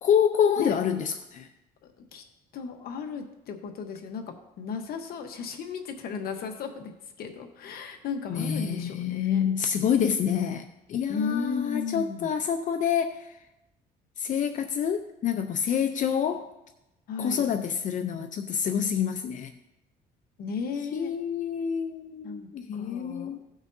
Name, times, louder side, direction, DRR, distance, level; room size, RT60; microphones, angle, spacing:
voice 1, 0.0-1.5 8.3-13.4 14.2-16.5 17.2-19.5 20.9-23.4, left 8 dB, 50° left, 7 dB, 0.6 m, -27 dB
voice 2, 2.5-4.2 4.6-6.9 7.2-9.4 11.1-12.3 17.1-17.5 20.4-21.1 22.2-23.4, left 5 dB, 65° left, 5 dB, 1.1 m, -34 dB
16.5 x 6.2 x 2.7 m, 0.92 s
cardioid pair, 110°, 17 cm